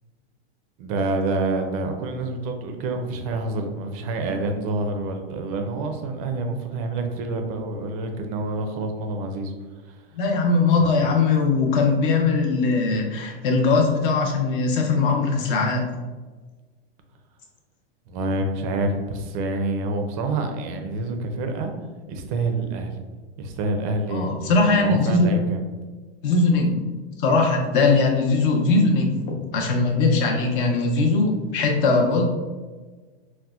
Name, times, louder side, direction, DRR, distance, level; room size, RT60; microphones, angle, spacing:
voice 1, 0.8-9.5 9.9-10.0 10.8-10.9 18.1-21.7 22.1-22.9 23.4-25.6, right 2 dB, 35° right, 5 dB, 0.4 m, -27 dB
voice 2, 10.1-15.9 24.1-25.3 26.2-26.8 27.2-32.2, left 3 dB, 55° left, 1 dB, 0.7 m, -20 dB
4.1 x 2.1 x 2.3 m, 1.3 s
supercardioid pair, 145°, 31 cm